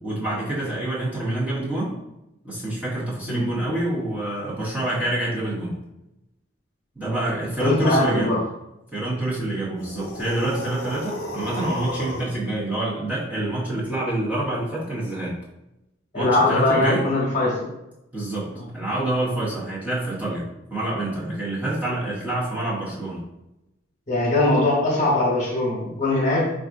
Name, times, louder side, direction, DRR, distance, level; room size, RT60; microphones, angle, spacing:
voice 1, 0.0-1.9 2.4-5.8 7.0-8.4 8.9-15.4 16.1-17.1 18.1-23.2, right 1 dB, 10° right, -8 dB, 0.9 m, -27 dB
voice 2, 7.6-8.4 16.1-17.7 18.5-18.7 24.1-26.5, left 2 dB, 40° left, -4 dB, 1.1 m, -21 dB
sound 1, 9.8-12.4, left 1 dB, 55° left, 0.7 m, -33 dB
4.8 x 2.4 x 2.5 m, 0.91 s
head